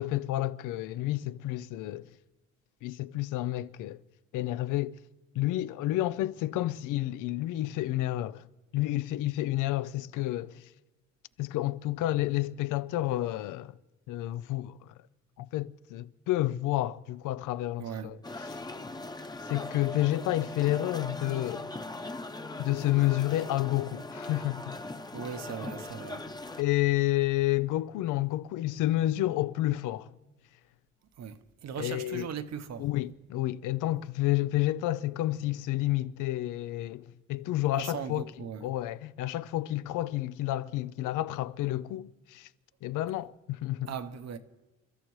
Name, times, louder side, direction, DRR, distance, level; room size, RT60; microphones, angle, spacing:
voice 1, 0.0-2.1 2.8-4.0 4.3-4.9 5.4-8.5 8.7-10.7 11.4-13.7 14.1-14.7 15.4-18.2 19.4-21.7 22.6-24.8 26.6-30.1 31.8-32.3 32.8-38.3 38.6-42.5 42.8-43.9, left 15 dB, 90° left, 0.5 m, -30 dB
voice 2, 17.8-18.2 25.1-26.3 31.2-32.9 37.7-38.7 43.9-44.4, right 7 dB, 60° right, 0.9 m, -38 dB
sound 1, 18.2-26.6, left 2 dB, 15° left, 0.8 m, -40 dB
29.0 x 13.0 x 3.1 m
cardioid pair, 90°, 30 cm